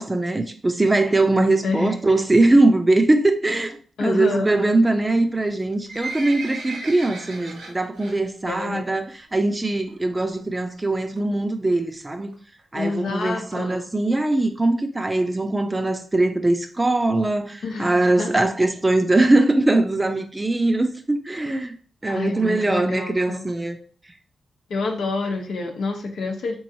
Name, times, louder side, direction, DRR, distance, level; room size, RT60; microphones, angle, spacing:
voice 1, 0.0-12.3 12.7-21.7 22.0-23.8, right 2 dB, 25° right, 0.5 m, -21 dB
voice 2, 1.6-1.9 4.0-4.6 8.5-8.9 12.7-13.9 17.6-18.5 22.1-23.4 24.7-26.6, left 3 dB, 75° left, 0.7 m, -27 dB
Livestock farm animals working animals, 5.5-8.2 8.5-8.8 9.1-9.2 9.9-10.0 10.2-10.3 10.5-10.6 11.2-11.4 12.0-12.1 12.3-12.4 12.6-12.7 12.9-13.0 13.5-13.6 14.0-14.1 14.6-14.7, right 2 dB, 90° right, 1.5 m, -35 dB
3.7 x 3.0 x 2.7 m
cardioid pair, 55°, 0 cm